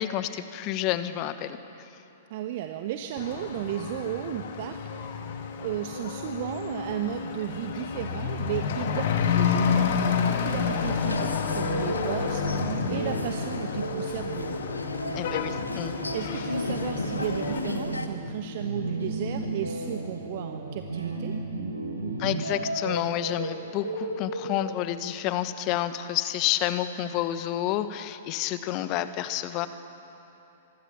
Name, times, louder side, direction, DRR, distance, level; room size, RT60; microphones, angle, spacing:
voice 1, 0.0-1.6 15.1-16.0 22.2-29.7, left 12 dB, 35° left, 12 dB, 1.3 m, -29 dB
voice 2, 2.3-5.3 5.6-14.6 16.1-21.3, right 11 dB, 45° right, 7 dB, 1.2 m, -34 dB
Truck / Accelerating revving vroom, 3.2-17.6, left 6 dB, 50° left, 2.2 m, -30 dB
sound 1, 10.4-18.1, left 2 dB, 80° left, 1.5 m, -35 dB
sound 2, 11.5-24.8, right 2 dB, 85° right, 3.7 m, -34 dB
26.0 x 24.0 x 7.3 m, 3.0 s
figure-of-eight pair, 105°, 0 cm